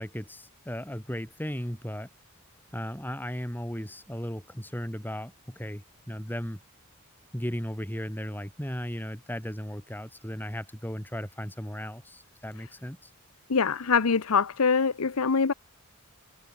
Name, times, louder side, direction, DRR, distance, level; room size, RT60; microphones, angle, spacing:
voice 1, 0.0-2.1 2.7-6.6 7.3-13.1, equal, 10° left, 4.1 m, -36 dB
voice 2, 13.5-15.5, left 5 dB, 85° left, 0.8 m, -24 dB
head